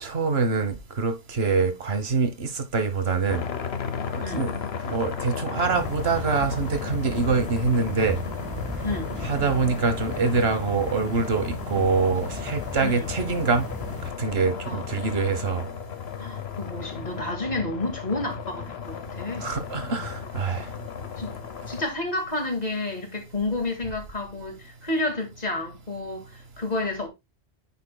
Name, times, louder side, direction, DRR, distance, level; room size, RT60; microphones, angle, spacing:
voice 1, 0.0-3.4 4.1-4.5 4.9-8.2 9.2-13.7 14.2-15.6 19.4-20.7, right 4 dB, 75° right, 1.4 m, -25 dB
sound 1, 3.3-21.8, left 6 dB, 75° left, 1.1 m, -34 dB
sound 2, 5.7-14.1, equal, 15° right, 1.3 m, -37 dB
voice 2, 14.7-15.1 16.2-19.5 21.2-21.3 21.7-27.1, left 2 dB, 40° left, 2.1 m, -30 dB
9.9 x 5.8 x 2.2 m
omnidirectional pair, 1.1 m